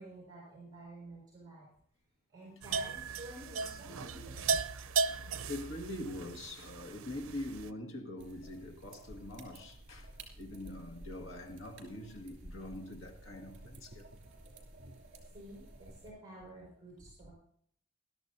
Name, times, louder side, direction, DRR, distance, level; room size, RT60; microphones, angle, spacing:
voice 1, 0.0-1.7 2.3-4.5 15.3-17.3, right 1 dB, 20° right, 5.3 m, -51 dB
sound 1, 2.6-7.7, right 4 dB, 75° right, 0.6 m, -36 dB
voice 2, 5.2-14.1 17.0-17.1, left 1 dB, 65° left, 2.0 m, -44 dB
sound 2, 8.2-16.1, right 1 dB, 55° right, 2.8 m, -53 dB
20.5 x 12.5 x 2.7 m
head